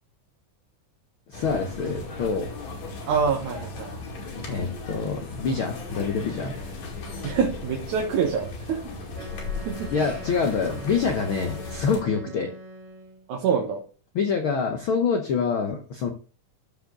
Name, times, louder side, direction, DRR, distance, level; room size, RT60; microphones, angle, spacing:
voice 1, 1.3-2.5 4.5-6.5 9.9-12.5 14.1-16.1, left 5 dB, 85° left, 5 dB, 1.1 m, -26 dB
sound 1, 1.3-12.0, left 3 dB, 60° left, 3.5 m, -36 dB
voice 2, 3.1-3.9 7.2-8.8 9.7-9.9 13.3-13.8, right 6 dB, 70° right, 1 dB, 2.6 m, -25 dB
Wind instrument woodwind instrument, 9.1-13.3, right 1 dB, 40° right, 1.5 m, -42 dB
13.5 x 4.7 x 3.8 m, 0.37 s
omnidirectional pair, 3.7 m